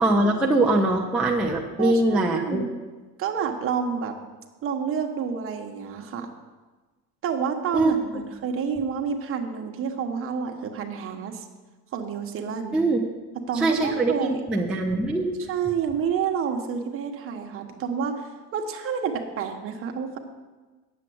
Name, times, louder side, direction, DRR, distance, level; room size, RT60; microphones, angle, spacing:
voice 1, 0.0-2.7 7.7-7.9 12.7-13.0 13.5-15.4, right 2 dB, ahead, -2 dB, 0.6 m, -22 dB
voice 2, 1.8-2.7 3.2-4.1 4.6-6.3 7.2-11.4 11.9-12.8 13.5-14.4 15.5-20.2, right 7 dB, 35° right, 3 dB, 1.2 m, -29 dB
9.7 x 7.6 x 7.7 m, 1.3 s
cardioid pair, 160°, 39 cm